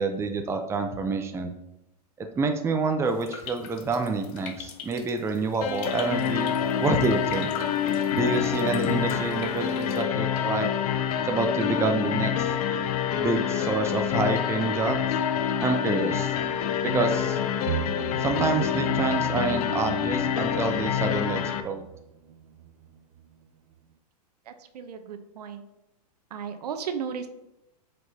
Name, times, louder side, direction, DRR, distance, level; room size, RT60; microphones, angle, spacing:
voice 1, 0.0-1.5 2.2-6.5 6.8-7.5 8.2-10.7 11.3-12.5 13.2-15.2 15.6-16.4 16.8-17.4 18.2-21.9, right 3 dB, 15° right, 5 dB, 0.6 m, -27 dB
sound 1, 3.0-10.0, left 7 dB, 45° left, 1.0 m, -44 dB
sound 2, 5.6-21.6, left 8 dB, 65° left, 0.7 m, -27 dB
sound 3, 17.7-23.5 23.7-23.8, right 8 dB, 50° right, 0.6 m, -38 dB
voice 2, 24.5-25.6 26.3-27.3, right 7 dB, 75° right, 9 dB, 0.8 m, -35 dB
7.6 x 5.1 x 2.8 m, 0.90 s
hypercardioid pair, 120°, 21 cm